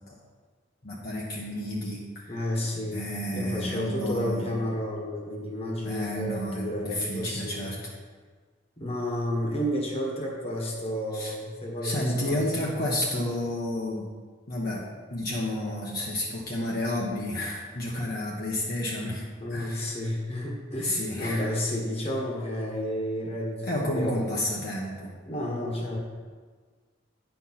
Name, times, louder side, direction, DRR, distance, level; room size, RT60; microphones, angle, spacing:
voice 1, 0.8-2.5 2.9-4.5 5.8-7.8 11.1-11.3 11.8-14.1 14.5-19.2 19.5-20.0 20.8-21.5 23.7-25.1, left 1 dB, 50° left, -4 dB, 1.2 m, -31 dB
voice 2, 2.3-3.1 3.3-7.7 8.8-12.5 19.4-24.4 25.2-26.0, equal, 30° left, -2 dB, 1.5 m, -31 dB
9.9 x 4.6 x 5.8 m, 1.5 s
head